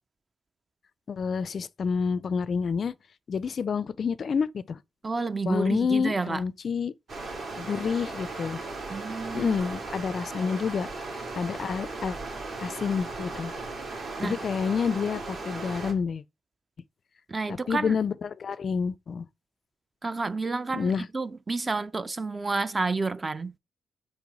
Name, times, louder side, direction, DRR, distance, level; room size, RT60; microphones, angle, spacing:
voice 1, 1.1-2.9 3.3-4.8 5.5-6.9 7.6-8.6 9.3-11.1 11.3-12.2 12.6-13.5 14.2-16.2 17.5-19.3 20.7-21.1, left 6 dB, 45° left, 0.3 m, -28 dB
voice 2, 5.0-6.4 8.9-9.6 14.2-14.4 17.3-18.0 20.0-23.6, right 3 dB, 25° right, 0.4 m, -30 dB
Stream, 7.1-15.9, right 3 dB, 55° right, 1.9 m, -37 dB
5.0 x 4.6 x 4.0 m
cardioid pair, 90°, 0 cm